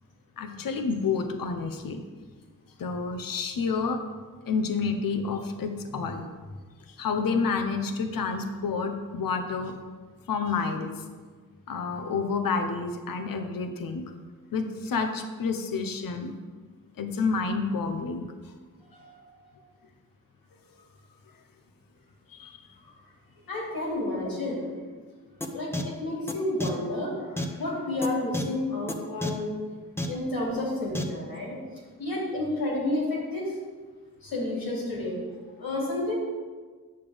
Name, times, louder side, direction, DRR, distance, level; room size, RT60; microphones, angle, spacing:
voice 1, 0.4-2.0 2.8-4.0 4.5-6.3 6.9-9.8 10.3-10.9 11.7-14.0 14.5-16.3 17.0-18.3 22.3-22.7, left 4 dB, 70° left, 6 dB, 0.8 m, -29 dB
voice 2, 23.5-24.6 25.5-29.5 30.1-31.6 32.0-33.5 34.2-35.2 35.6-36.1, left 1 dB, 85° left, -4 dB, 2.7 m, -30 dB
sound 1, 25.4-25.5 25.7-25.8 26.3-26.4 26.6-26.7 27.4-27.5 28.0-28.1 28.3-28.4 28.9-29.0 29.2-29.3 30.0-30.1 30.9-31.0, left 1 dB, 5° left, 0.9 m, -29 dB
8.9 x 6.8 x 3.5 m, 1.5 s
cardioid pair, 55°, 35 cm